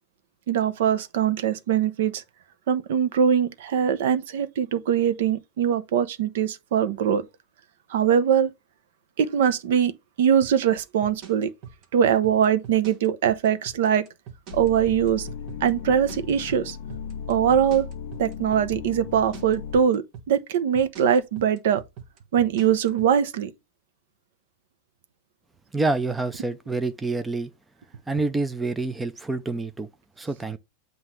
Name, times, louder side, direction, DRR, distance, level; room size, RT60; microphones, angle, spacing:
voice 1, 0.5-2.2 2.7-7.3 7.9-8.5 9.2-9.9 10.2-11.5 11.9-14.1 14.5-15.3 15.6-16.8 17.3-17.9 18.2-21.8 22.3-23.5, right 8 dB, 65° right, 0.9 m, -22 dB
sound 1, 10.4-23.2, right 8 dB, 35° right, 1.4 m, -42 dB
sound 2, 14.5-19.8, left 7 dB, 55° left, 0.5 m, -36 dB
voice 2, 25.7-27.5 28.1-29.9 30.2-30.6, right 3 dB, 5° right, 0.4 m, -27 dB
7.9 x 2.6 x 5.8 m
supercardioid pair, 155°, 0 cm